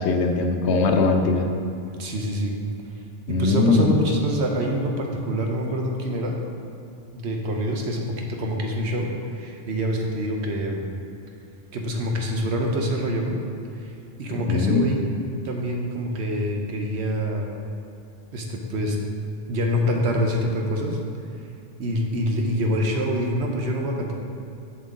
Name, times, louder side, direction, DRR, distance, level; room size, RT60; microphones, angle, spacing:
voice 1, 0.0-1.5 3.3-3.9 14.3-15.0, left 3 dB, 80° left, 4 dB, 0.9 m, -21 dB
voice 2, 2.0-2.6 3.3-6.4 7.1-10.9 11.7-13.4 13.8-15.1 15.4-17.5 18.3-19.0 19.5-21.0 21.8-24.1, equal, 80° right, 1 dB, 1.2 m, -26 dB
7.3 x 6.2 x 3.7 m, 2.6 s
omnidirectional pair, 1.1 m